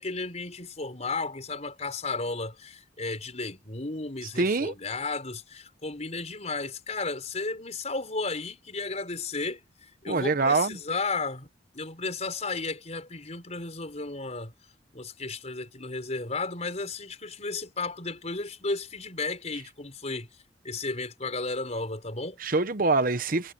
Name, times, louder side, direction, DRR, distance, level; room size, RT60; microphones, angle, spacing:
voice 1, 0.0-9.6 10.0-11.5 11.7-14.5 14.9-20.3 20.6-22.4, left 3 dB, 40° left, 5.2 m, -33 dB
voice 2, 4.4-4.7 10.1-10.8 22.4-23.5, right 3 dB, 55° right, 0.9 m, -24 dB
head